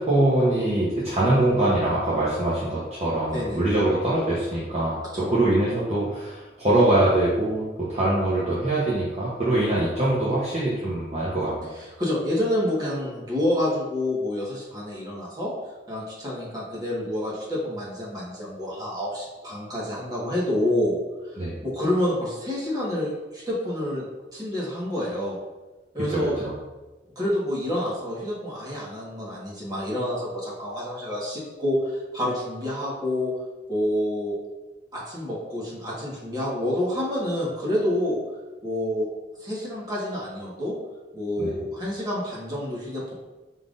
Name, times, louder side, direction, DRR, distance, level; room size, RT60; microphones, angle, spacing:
voice 1, 0.0-11.7 21.4-21.6 26.1-26.5 41.4-41.5, right 1 dB, 40° right, -8 dB, 0.9 m, -23 dB
voice 2, 11.7-15.5 15.9-24.0 24.3-25.4 25.9-26.4 27.1-33.3 33.7-34.4 34.9-38.2 38.6-39.1 39.4-40.7 41.1-43.1, left 1 dB, 20° right, -6 dB, 1.5 m, -28 dB
5.5 x 3.7 x 2.6 m, 1.1 s
head